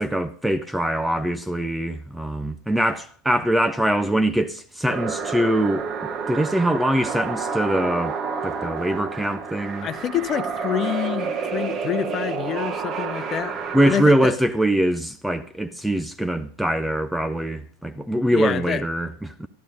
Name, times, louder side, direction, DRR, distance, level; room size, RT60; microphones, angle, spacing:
voice 1, 0.0-5.9 6.3-8.2 8.4-9.9 13.7-19.5, right 1 dB, 5° right, 0.7 m, -23 dB
sound 1, 4.9-14.0, right 5 dB, 30° right, 1.6 m, -29 dB
voice 2, 9.8-13.6 13.8-14.4 18.3-18.8, left 10 dB, 30° left, 1.0 m, -27 dB
14.0 x 13.0 x 5.1 m
figure-of-eight pair, 90°, 0 cm